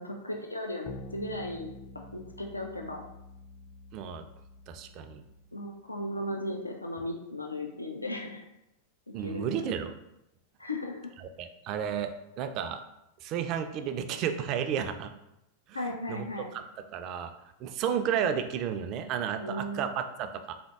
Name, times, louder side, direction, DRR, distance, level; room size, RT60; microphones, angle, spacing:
voice 1, 0.0-3.0 5.5-8.4 9.2-9.8 10.6-11.1 15.7-16.5 19.4-19.9, left 1 dB, 85° left, 2 dB, 0.4 m, -36 dB
sound 1, 0.9-5.6, left 2 dB, 30° left, 0.5 m, -48 dB
voice 2, 3.9-4.2 4.7-5.2 9.1-10.0 11.4-12.8 13.2-15.1 15.7-16.6 16.9-17.3 17.6-20.5, right 8 dB, 40° right, 8 dB, 0.3 m, -32 dB
3.7 x 3.4 x 2.3 m, 0.86 s
figure-of-eight pair, 90°, 0 cm